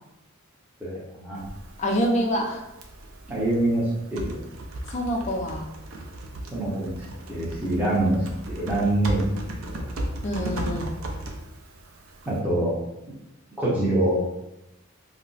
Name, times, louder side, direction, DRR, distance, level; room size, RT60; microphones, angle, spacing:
voice 1, 0.8-1.4 3.3-4.4 6.5-7.0 7.3-8.2 8.5-9.8 12.3-12.7 13.6-14.2, right 1 dB, 5° right, -7 dB, 0.7 m, -25 dB
Typing, 1.3-12.4, right 1 dB, 65° right, 0.4 m, -36 dB
voice 2, 1.8-2.6 4.9-5.7 10.2-10.9, equal, 35° left, 1 dB, 0.4 m, -26 dB
2.4 x 2.1 x 3.8 m, 0.90 s
head